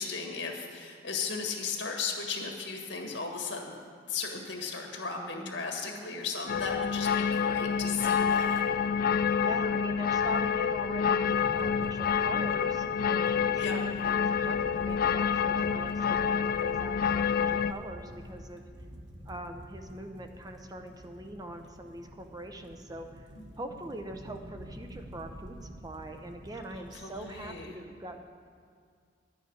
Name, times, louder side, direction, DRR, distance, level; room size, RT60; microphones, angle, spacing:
voice 1, 0.0-3.7 4.1-8.6 13.6-13.8 23.4-23.5 26.7-27.7, left 5 dB, 85° left, 2 dB, 1.7 m, -36 dB
voice 2, 5.2-5.5 5.9-6.3 9.4-18.6 19.2-23.3 23.6-28.2, right 1 dB, 20° right, 5 dB, 0.7 m, -43 dB
sound 1, 6.5-17.7, left 7 dB, 55° left, 0.3 m, -28 dB
sound 2, 11.3-27.6, equal, 80° right, 1.3 m, -48 dB
11.0 x 8.8 x 5.4 m, 2.1 s
head